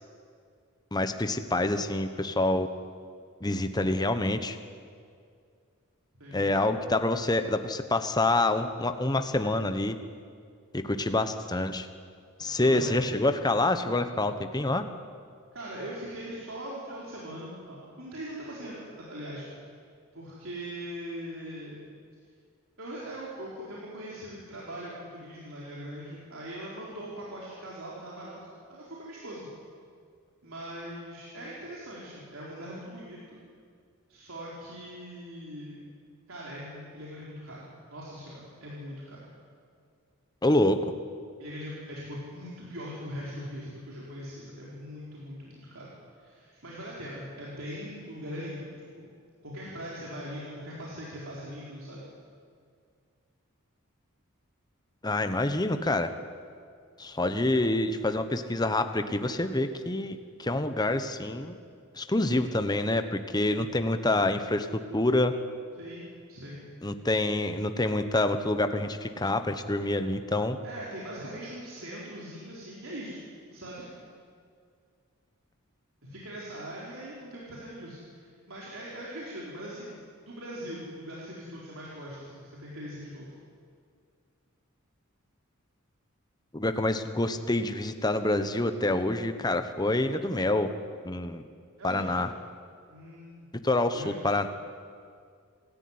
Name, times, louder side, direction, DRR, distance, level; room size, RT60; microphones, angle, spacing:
voice 1, 0.9-2.7 3.4-4.6 6.3-9.9 10.7-11.9 12.4-14.8 40.4-40.8 55.0-56.1 57.0-61.6 61.9-64.7 64.9-65.3 66.8-70.6 86.5-90.7 91.0-91.4 91.8-92.3 93.6-94.5, left 2 dB, 20° left, 9 dB, 1.1 m, -27 dB
voice 2, 12.6-13.0 15.5-18.8 19.1-19.5 20.1-21.8 22.8-28.4 28.7-29.5 30.4-33.4 34.1-35.8 36.3-39.2 41.4-45.9 46.1-49.1 49.4-52.0 65.8-66.6 70.6-73.3 73.5-73.9 76.0-83.3 91.8-92.1 92.9-93.4 93.9-94.2, equal, 65° right, -6 dB, 4.2 m, -41 dB
27.0 x 14.0 x 9.6 m, 2.2 s
head